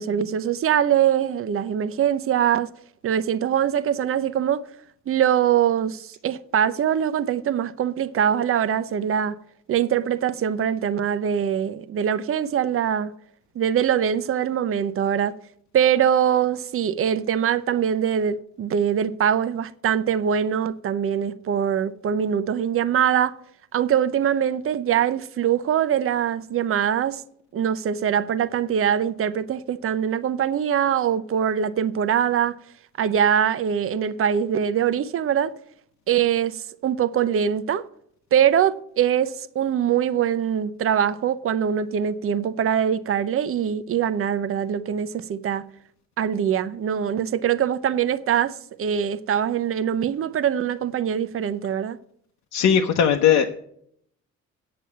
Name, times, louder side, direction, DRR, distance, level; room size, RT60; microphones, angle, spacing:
voice 1, 0.0-2.7 3.0-4.7 5.1-9.4 9.7-13.1 13.6-15.3 15.7-23.4 23.7-27.2 27.5-32.6 33.0-35.5 36.1-37.9 38.3-45.6 46.2-52.0, right 9 dB, 45° right, 0.6 m, -23 dB
voice 2, 52.5-53.5, left 8 dB, 80° left, 0.9 m, -18 dB
8.6 x 6.9 x 8.4 m
cardioid pair, 90°, 30 cm